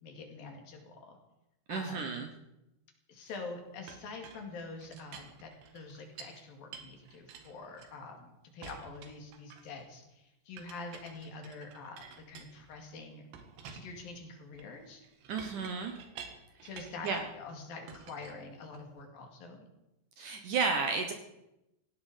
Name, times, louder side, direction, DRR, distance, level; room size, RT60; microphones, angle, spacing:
voice 1, 0.0-1.2 1.7-2.2 3.1-13.2 13.7-15.0 16.6-19.7, left 3 dB, 60° left, 3 dB, 4.0 m, -46 dB
voice 2, 1.7-2.3 15.3-16.0 16.6-16.7 17.0-17.2 20.2-21.1, right 4 dB, 65° right, 5 dB, 2.2 m, -32 dB
Chink clink, 3.9-6.4 6.7-8.2 8.6-9.8 10.6-12.9 13.3-17.4 17.9-19.0, right 7 dB, 90° right, 3.8 m, -51 dB
18.0 x 16.0 x 5.1 m, 0.91 s
omnidirectional pair, 4.7 m